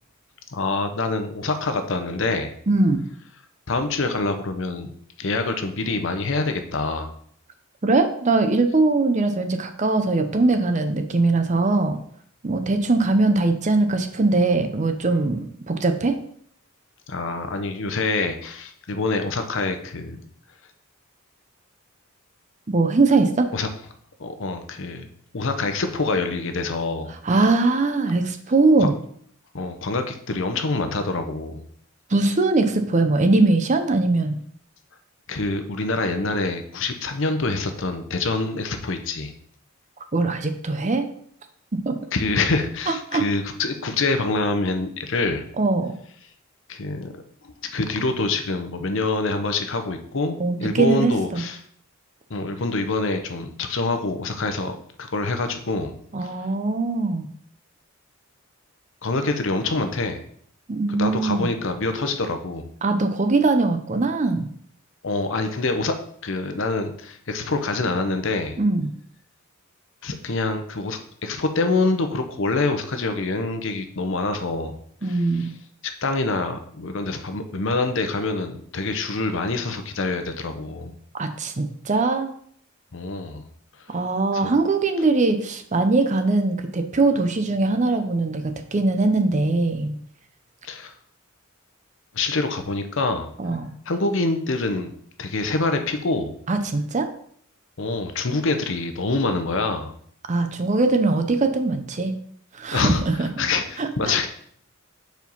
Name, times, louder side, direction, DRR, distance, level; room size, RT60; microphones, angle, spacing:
voice 1, 0.5-2.5 3.7-4.9 5.2-7.1 17.1-20.2 23.5-23.7 24.2-25.1 25.3-27.1 28.8-28.9 29.5-31.7 35.3-39.3 42.1-45.4 46.7-47.1 47.4-51.6 52.3-56.3 59.0-60.2 60.9-62.7 65.0-65.9 66.2-68.6 70.0-75.5 76.0-81.0 82.9-83.5 84.3-84.5 90.6-90.9 92.1-93.3 93.9-94.9 95.2-96.4 97.8-99.9 102.7-103.0 103.4-104.3, left 3 dB, 65° left, 7 dB, 0.8 m, -26 dB
voice 2, 2.7-3.0 7.8-12.0 12.4-16.2 22.7-23.5 27.2-28.9 32.1-34.4 40.1-41.1 41.9-42.0 42.9-43.2 45.6-45.9 50.4-51.4 56.1-57.3 60.7-61.5 62.8-64.5 68.6-68.9 75.0-75.5 81.2-82.3 83.9-89.9 93.4-93.7 96.5-97.1 100.3-102.1 102.6-103.3 103.8-104.3, right 3 dB, 35° right, 8 dB, 0.6 m, -21 dB
4.8 x 4.5 x 5.3 m, 0.63 s
head